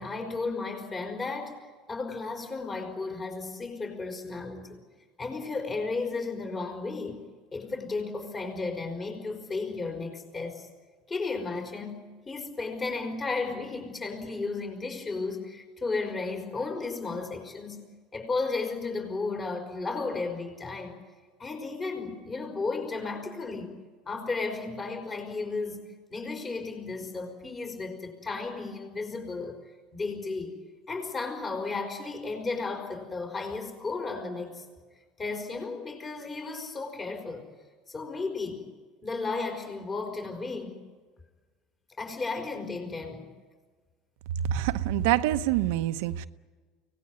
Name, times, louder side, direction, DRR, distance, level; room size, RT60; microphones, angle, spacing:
voice 1, 0.0-4.8 5.2-7.3 7.5-10.7 11.1-17.9 18.1-20.9 21.4-23.7 24.1-29.6 29.9-30.6 30.9-34.7 35.2-37.5 37.9-38.6 39.0-40.8 42.0-43.3, left 3 dB, 30° left, 5.2 m, -34 dB
voice 2, 44.4-46.3, right 12 dB, 75° right, 0.8 m, -26 dB
24.5 x 19.0 x 9.7 m
hypercardioid pair, 85°, 0 cm